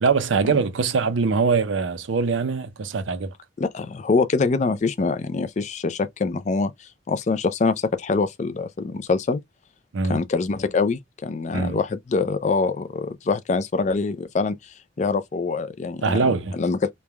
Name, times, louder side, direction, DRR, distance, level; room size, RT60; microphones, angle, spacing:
voice 1, 0.0-3.3 9.9-10.2 11.5-11.8 16.0-16.6, right 4 dB, 85° right, 0.5 m, -22 dB
voice 2, 3.6-9.4 10.1-14.6 15.0-16.3 16.6-16.9, left 4 dB, 40° left, 0.3 m, -24 dB
3.2 x 2.1 x 2.2 m
head